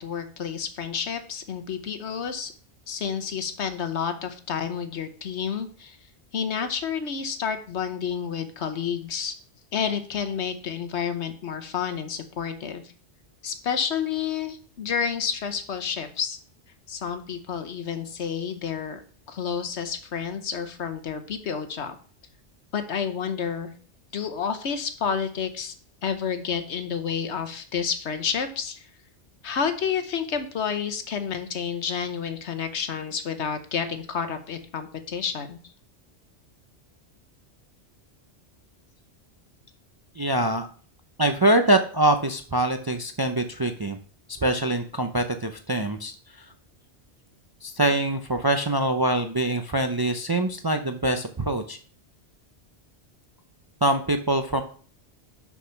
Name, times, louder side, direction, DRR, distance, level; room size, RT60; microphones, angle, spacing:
voice 1, 0.0-2.5 2.9-6.0 6.3-9.3 9.7-12.8 13.4-16.4 16.9-19.0 19.3-21.9 22.7-23.7 24.1-25.7 26.0-28.9 29.4-35.6, left 7 dB, 75° left, 9 dB, 1.2 m, -30 dB
voice 2, 40.2-40.7 41.2-44.0 44.4-46.5 47.6-51.8 53.8-54.6, right 1 dB, 30° right, 7 dB, 0.4 m, -24 dB
6.0 x 5.9 x 5.8 m, 0.44 s
omnidirectional pair, 1.2 m